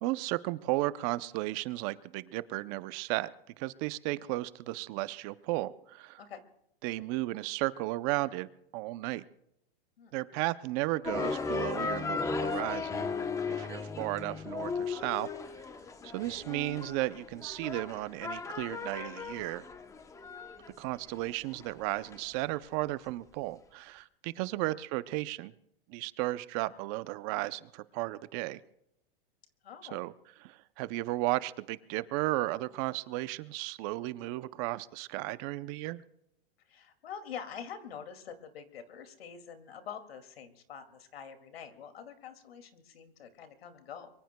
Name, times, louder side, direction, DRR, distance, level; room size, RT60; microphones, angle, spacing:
voice 1, 0.0-3.3 3.6-6.2 6.8-9.2 10.1-13.1 13.5-15.3 16.0-19.6 20.8-25.5 25.9-28.6 29.8-30.1 30.4-36.0, right 18 dB, 35° right, 16 dB, 0.6 m, -34 dB
sound 1, 11.0-22.2, left 4 dB, 10° left, 0.8 m, -36 dB
voice 2, 29.6-30.0 36.7-44.1, left 7 dB, 80° left, 8 dB, 2.4 m, -46 dB
24.0 x 23.0 x 2.2 m, 0.78 s
hypercardioid pair, 140°, 29 cm